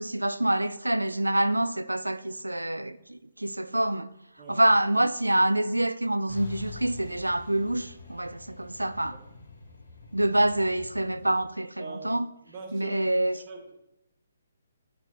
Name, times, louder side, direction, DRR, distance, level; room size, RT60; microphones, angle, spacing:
voice 1, 0.0-4.1 4.5-9.2 10.1-12.3 12.7-13.4, right 1 dB, 90° right, 0.3 m, -26 dB
Truck, 6.3-11.3, left 4 dB, 65° left, 1.4 m, -45 dB
voice 2, 11.8-12.2 12.5-13.0 13.3-13.8, right 4 dB, 35° right, 1.2 m, -42 dB
7.8 x 6.1 x 2.9 m
figure-of-eight pair, 135°, 0 cm